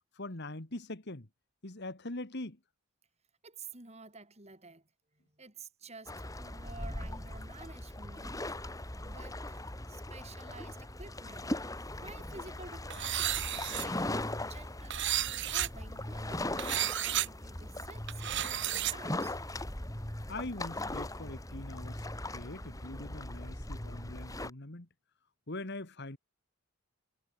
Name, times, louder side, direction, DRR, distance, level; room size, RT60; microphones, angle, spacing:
voice 1, 0.2-1.3 1.6-2.6 20.3-24.9 25.5-26.2, left 2 dB, 50° left, 1.9 m, -42 dB
voice 2, 3.4-4.9 5.2-8.5 9.0-19.4, right 4 dB, 30° right, 3.8 m, -51 dB
sound 1, 6.1-24.5, left 1 dB, 15° left, 2.2 m, -39 dB
sound 2, 12.9-13.9 14.9-15.7 16.6-17.3 18.1-18.9, right 12 dB, 55° right, 1.5 m, -32 dB
head